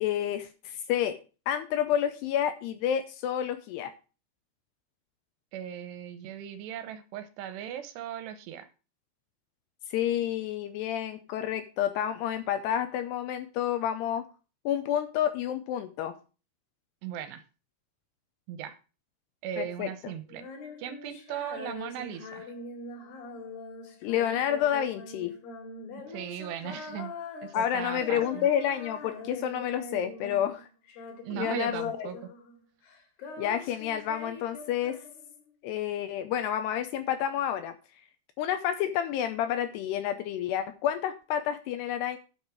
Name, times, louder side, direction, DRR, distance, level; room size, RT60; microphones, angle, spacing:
voice 1, 0.0-1.2 1.5-3.9 9.9-14.3 14.7-16.1 19.6-20.1 24.0-25.3 27.5-30.7 31.3-32.1 33.4-35.0 35.6-37.7 38.4-42.2, left 10 dB, 80° left, 10 dB, 2.6 m, -29 dB
voice 2, 5.5-8.7 17.0-17.4 18.5-18.8 19.4-20.5 20.8-22.5 26.1-27.1 27.4-28.5 31.2-32.2, right 10 dB, 75° right, 11 dB, 2.8 m, -38 dB
Female singing, 20.3-30.6 30.9-32.6 32.8-35.5, left 3 dB, 60° left, 3.3 m, -43 dB
9.3 x 7.0 x 4.7 m, 0.33 s
omnidirectional pair, 5.1 m